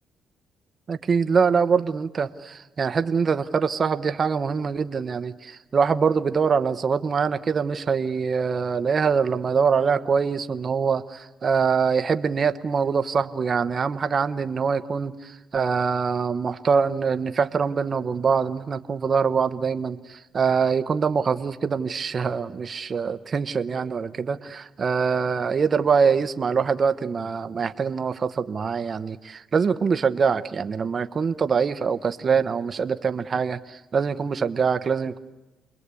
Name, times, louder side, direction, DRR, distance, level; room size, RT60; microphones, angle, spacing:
voice 1, 0.9-35.2, right 6 dB, 45° right, 10 dB, 1.0 m, -24 dB
29.0 x 21.5 x 8.4 m, 1.0 s
cardioid pair, 90°, 0 cm